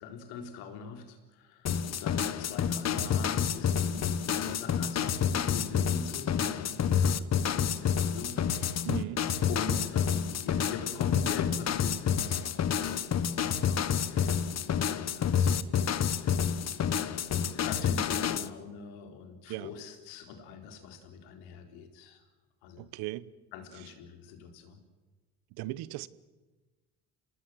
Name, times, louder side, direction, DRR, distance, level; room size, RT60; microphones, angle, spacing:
voice 1, 0.0-8.4 8.6-8.9 9.5-15.9 17.5-22.2 22.6-22.9 23.5-24.8, left 5 dB, 90° left, 4.0 m, -43 dB
sound 1, 1.7-18.5, left 8 dB, 45° left, 1.3 m, -29 dB
voice 2, 8.8-9.2 19.5-19.7 22.8-23.3 25.6-26.1, right 17 dB, 80° right, 1.1 m, -37 dB
27.5 x 19.5 x 7.8 m
cardioid pair, 95°, 37 cm